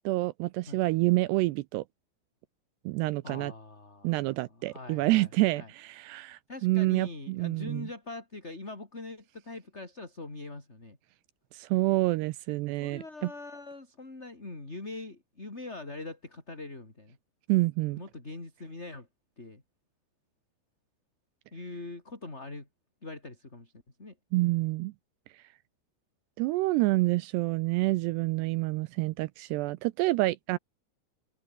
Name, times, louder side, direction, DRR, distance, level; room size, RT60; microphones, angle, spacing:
voice 1, 0.1-1.8 2.9-3.5 4.0-7.9 11.5-13.3 17.5-18.0 24.3-24.9 26.4-30.6, right 20 dB, 80° right, 2.5 m, -28 dB
voice 2, 3.2-5.7 6.5-11.0 12.8-17.2 17.9-19.1 19.4-19.6 21.5-22.7 23.0-24.2, left 2 dB, 15° left, 4.0 m, -43 dB
open air
omnidirectional pair, 5.3 m